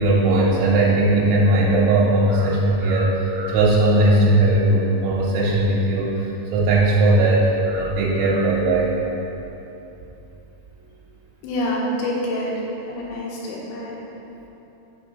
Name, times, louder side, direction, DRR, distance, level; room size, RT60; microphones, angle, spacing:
voice 1, 0.0-8.9 12.9-13.0, right 2 dB, 85° right, -5 dB, 3.5 m, -18 dB
voice 2, 11.4-14.0, left 1 dB, 80° left, -4 dB, 3.5 m, -27 dB
7.5 x 3.7 x 5.0 m, 3.0 s
omnidirectional pair, 6.0 m